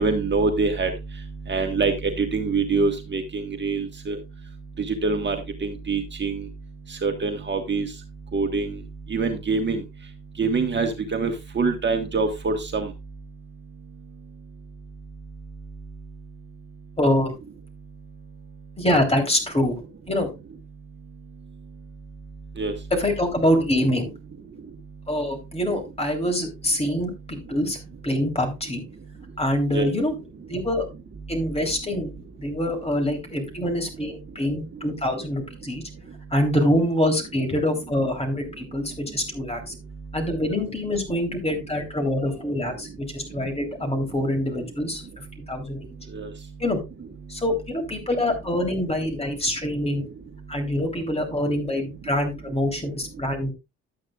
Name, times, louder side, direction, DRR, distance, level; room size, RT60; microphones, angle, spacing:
voice 1, 0.0-4.2 4.8-6.5 6.9-8.0 8.3-12.9 22.5-22.9 24.5-24.8 29.7-29.9 36.1-36.2 40.0-40.1 45.9-46.5 47.3-47.4, right 4 dB, 35° right, 1.5 m, -26 dB
voice 2, 17.0-17.3 18.8-19.8 20.1-20.3 22.9-24.1 25.1-27.8 28.0-28.8 29.4-30.1 30.5-30.9 31.3-32.1 32.4-35.8 36.3-39.7 40.1-45.9 46.6-46.8 47.3-50.1 50.5-53.5, left 1 dB, 20° left, 3.4 m, -25 dB
11.5 x 8.8 x 2.4 m
cardioid pair, 90°, 30 cm